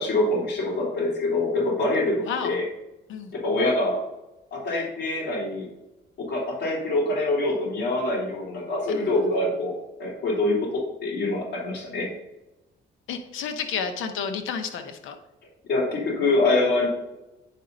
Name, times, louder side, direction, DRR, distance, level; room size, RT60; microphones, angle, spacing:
voice 1, 0.0-2.7 3.3-4.0 4.5-5.7 6.2-12.1 15.7-16.9, left 2 dB, 60° left, -4 dB, 3.0 m, -25 dB
voice 2, 2.2-2.5 3.1-3.3 8.9-9.3 13.1-15.2, left 6 dB, 85° left, 7 dB, 1.0 m, -31 dB
9.4 x 5.3 x 4.1 m, 0.97 s
cardioid pair, 90°, 20 cm